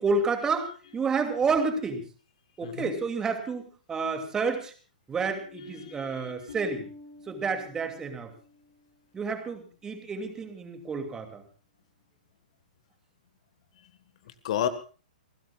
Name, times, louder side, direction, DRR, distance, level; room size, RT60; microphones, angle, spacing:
voice 1, 0.0-2.0 2.6-4.7 5.1-6.9 7.3-8.3 9.1-11.4, right 4 dB, 15° right, 6 dB, 2.6 m, -30 dB
voice 2, 5.5-6.5 13.8-13.9 14.2-14.7, left 10 dB, 45° left, 12 dB, 1.6 m, -33 dB
Bass guitar, 6.5-8.9, left 3 dB, 65° left, 7.1 m, -48 dB
29.5 x 16.5 x 2.4 m, 0.37 s
figure-of-eight pair, 115°, 4 cm